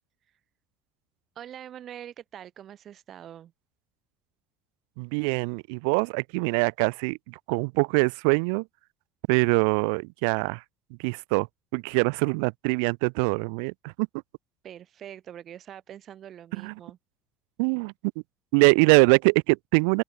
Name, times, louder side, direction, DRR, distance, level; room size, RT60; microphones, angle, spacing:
voice 1, 1.3-3.5 14.6-17.0, right 10 dB, 50° right, 4.9 m, -44 dB
voice 2, 5.0-8.6 9.3-10.6 11.0-11.5 11.7-14.1 16.5-16.7 17.6-17.9 18.5-20.0, right 36 dB, 80° right, 1.0 m, -23 dB
open air
supercardioid pair, 80°, 0 cm